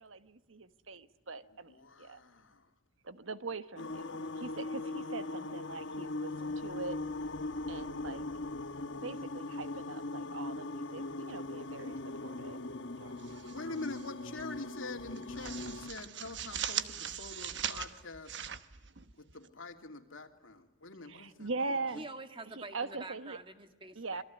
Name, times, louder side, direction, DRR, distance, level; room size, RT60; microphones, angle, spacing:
voice 1, 0.0-2.2 3.0-7.0 7.7-8.2 9.0-12.6 13.0-13.7 21.0-22.1 22.5-23.4 23.9-24.2, right 3 dB, 85° right, 12 dB, 1.3 m, -42 dB
voice 2, 1.8-2.5 13.5-18.4 19.3-21.5, left 3 dB, 85° left, 5 dB, 2.8 m, -45 dB
sound 1, 3.8-15.9, left 2 dB, 65° left, 1.3 m, -40 dB
sound 2, 13.2-14.1 14.4-14.6 15.0-19.5, right 9 dB, 60° right, 1.2 m, -40 dB
voice 3, 21.9-24.2, right 2 dB, 25° right, 8 dB, 1.7 m, -46 dB
27.0 x 23.0 x 9.5 m, 1.1 s
head